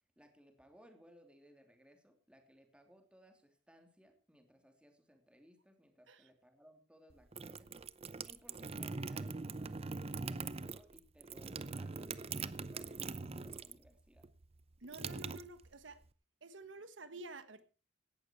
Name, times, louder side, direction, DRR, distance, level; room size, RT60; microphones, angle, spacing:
voice 1, 0.2-7.7 8.2-14.3, equal, 5° right, 3.0 m, -64 dB
sound 1, 7.1-13.9 14.2-16.0, right 4 dB, 35° right, 0.7 m, -42 dB
voice 2, 14.8-16.0 16.4-17.6, right 2 dB, 85° right, 1.3 m, -50 dB
17.5 x 12.0 x 4.6 m
head